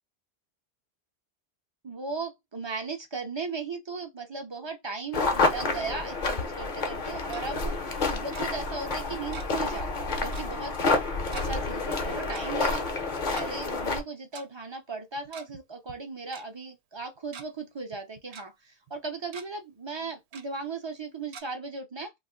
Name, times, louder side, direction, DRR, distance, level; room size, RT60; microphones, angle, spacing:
voice 1, 1.8-7.7 8.1-11.0 11.3-12.9 13.3-22.1, right 4 dB, 35° right, 0.5 m, -37 dB
sound 1, 5.1-14.0, left 3 dB, 55° left, 0.8 m, -29 dB
Tick-tock, 7.0-7.4 8.3-8.4 9.3-9.7 9.9-10.0 10.3-10.5 11.3-11.5 12.3-12.4 13.2-13.5 14.3-14.4 15.2-15.6 15.9-16.0 16.3-16.4 17.0-17.4 17.9-18.4 18.9-19.0 19.3-19.5 20.3-20.4 21.3-21.4, right 6 dB, 90° right, 0.9 m, -44 dB
2.5 x 2.4 x 3.6 m
omnidirectional pair, 1.1 m